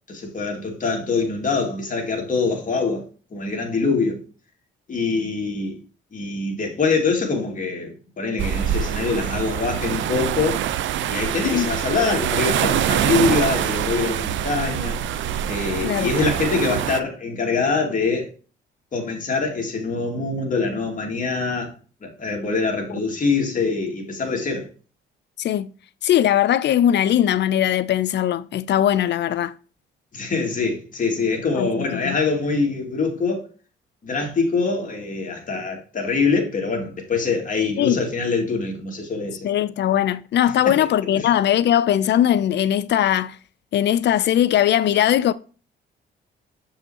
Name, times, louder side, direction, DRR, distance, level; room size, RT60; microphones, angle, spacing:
voice 1, 0.1-3.0 3.3-4.2 4.9-5.8 6.1-10.6 11.1-15.0 15.5-18.3 18.9-21.7 22.0-24.7 30.1-33.4 34.0-39.5 41.2-41.3, left 4 dB, 40° left, 2.5 m, -24 dB
sound 1, 8.4-17.0, right 10 dB, 75° right, 0.6 m, -24 dB
voice 2, 25.4-25.7 26.0-29.5 31.6-32.2 37.8-38.0 39.4-43.4 43.7-45.3, left 11 dB, 60° left, 0.5 m, -20 dB
7.0 x 5.6 x 2.8 m
cardioid pair, 90°, 20 cm